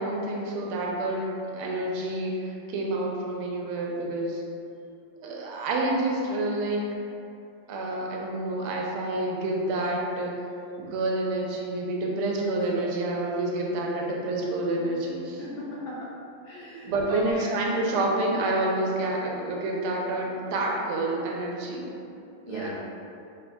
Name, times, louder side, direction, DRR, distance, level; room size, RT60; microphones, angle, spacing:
voice 1, 0.0-4.4 5.2-6.8 7.7-10.3 10.8-15.4 16.8-22.0 22.5-22.7, right 2 dB, 90° right, -1 dB, 1.5 m, -28 dB
voice 2, 15.4-16.1 16.5-17.5 22.5-22.7, equal, 70° left, -5 dB, 1.5 m, -36 dB
5.1 x 3.1 x 2.3 m, 2.7 s
omnidirectional pair, 2.3 m